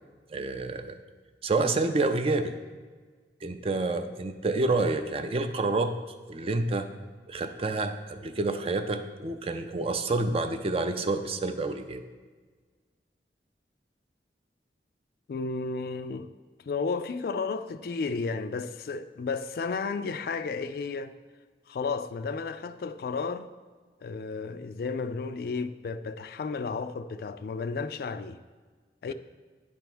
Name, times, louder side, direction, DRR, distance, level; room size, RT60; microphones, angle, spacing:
voice 1, 0.3-1.0 1.4-2.6 3.4-5.9 6.3-6.9 7.3-12.0, right 3 dB, 35° right, 0.4 m, -28 dB
voice 2, 15.3-16.3 16.6-21.1 21.7-23.5 24.0-28.4 29.0-29.1, left 4 dB, 55° left, 0.3 m, -33 dB
9.6 x 3.5 x 6.0 m
head